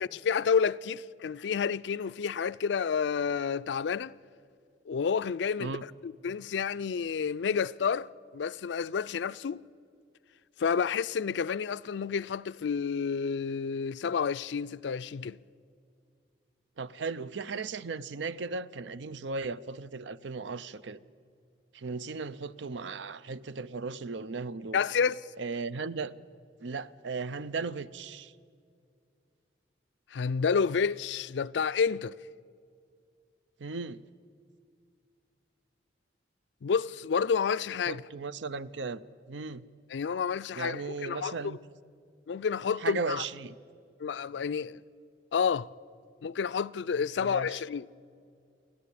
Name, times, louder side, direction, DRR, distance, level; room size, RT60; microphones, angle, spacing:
voice 1, 0.1-4.1 4.9-9.6 10.6-15.4 24.7-25.2 30.1-32.2 36.6-38.0 39.9-41.6 42.3-43.2 44.0-44.8 45.3-45.7 46.2-47.9, left 6 dB, 75° left, 0.4 m, -30 dB
voice 2, 16.8-21.0 21.7-24.8 25.4-26.1 26.6-28.3 33.6-34.0 37.9-39.0 39.3-39.6 40.6-41.6 42.8-43.6 47.2-47.5, right 4 dB, 90° right, 0.6 m, -36 dB
29.0 x 11.0 x 8.5 m
head